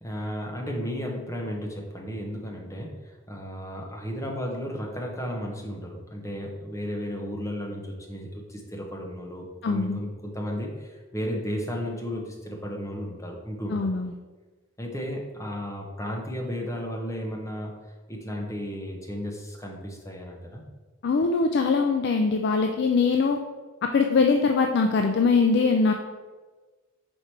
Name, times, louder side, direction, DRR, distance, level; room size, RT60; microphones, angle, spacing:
voice 1, 0.0-2.9 3.3-13.9 14.8-17.7 18.1-20.6, equal, 15° left, 0 dB, 0.8 m, -34 dB
voice 2, 9.6-10.0 13.7-14.1 21.0-23.4 23.9-25.9, left 4 dB, 50° left, 4 dB, 0.3 m, -22 dB
4.9 x 4.4 x 4.5 m, 1.3 s
head